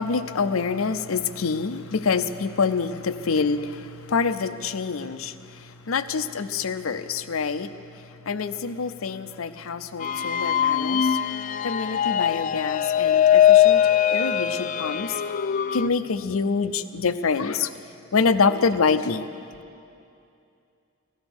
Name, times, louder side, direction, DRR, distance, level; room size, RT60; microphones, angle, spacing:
voice 1, 0.0-7.7 8.3-11.2 11.6-15.2 15.7-17.7 18.1-19.3, left 5 dB, 80° left, 12 dB, 0.6 m, -26 dB
sound 1, 10.0-15.9, left 10 dB, 40° left, 0.3 m, -21 dB
16.5 x 13.0 x 6.2 m, 2.6 s
head